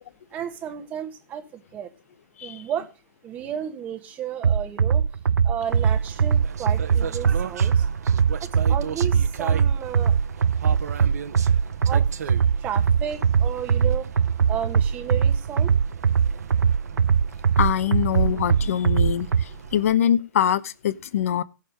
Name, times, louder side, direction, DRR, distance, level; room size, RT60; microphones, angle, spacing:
voice 1, 0.3-1.9 2.4-2.9 3.2-5.0 5.4-7.9 8.4-10.2 11.8-12.0 12.6-14.1 14.5-15.8, right 9 dB, 15° right, 6 dB, 1.3 m, -33 dB
sound 1, 4.4-19.4, right 7 dB, 90° right, 0.5 m, -21 dB
sound 2, 5.7-20.0, right 7 dB, 50° right, 1.1 m, -38 dB
voice 2, 17.6-21.4, left 10 dB, 45° left, 14 dB, 0.9 m, -24 dB
16.5 x 6.6 x 5.2 m, 0.31 s
hypercardioid pair, 160°, 11 cm